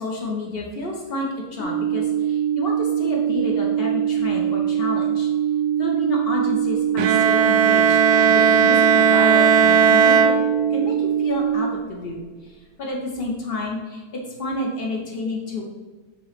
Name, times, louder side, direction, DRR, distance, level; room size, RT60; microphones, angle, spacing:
voice 1, 0.0-5.3 5.8-10.3 10.7-12.2 12.4-12.5 12.8-15.7, left 2 dB, 50° left, -1 dB, 0.7 m, -30 dB
sound 1, 1.6-11.6, right 9 dB, 65° left, 1.6 m, -23 dB
Bowed string instrument, 7.0-11.0, right 6 dB, 75° right, 1.1 m, -17 dB
6.6 x 3.0 x 5.0 m, 1.3 s
omnidirectional pair, 2.2 m